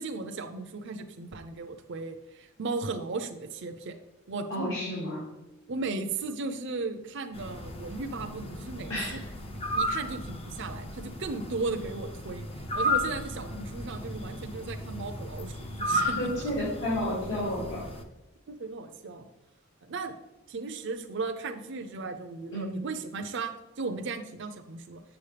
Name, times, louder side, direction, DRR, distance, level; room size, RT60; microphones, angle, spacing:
voice 1, 0.0-4.0 4.3-4.8 5.7-9.2 9.7-12.5 12.7-16.4 18.5-19.3 19.8-20.1 20.5-25.0, right 3 dB, 60° right, 6 dB, 0.6 m, -36 dB
voice 2, 4.5-5.2 8.9-9.2 15.9-17.9 22.5-22.9, left 1 dB, 70° left, -8 dB, 2.5 m, -31 dB
sound 1, 7.3-18.0, equal, 30° left, 0.6 m, -34 dB
7.2 x 7.0 x 3.4 m, 0.96 s
head